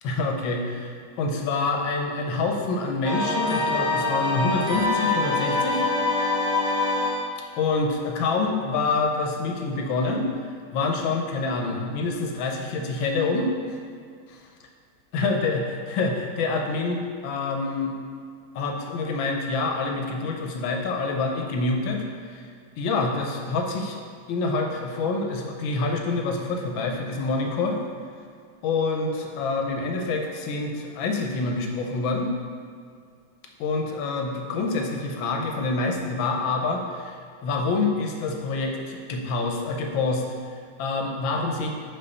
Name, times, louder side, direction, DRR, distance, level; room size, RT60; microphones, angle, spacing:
voice 1, 0.0-5.8 7.6-10.3 10.7-13.8 14.3-14.4 15.1-17.9 18.5-22.5 22.8-24.0 24.3-27.8 28.6-32.3 33.6-40.2 40.5-41.7, left 3 dB, 75° left, 2 dB, 1.4 m, -26 dB
sound 1, 3.0-7.3, left 2 dB, 25° right, 0.5 m, -24 dB
5.6 x 4.1 x 5.3 m, 2.2 s
omnidirectional pair, 2.2 m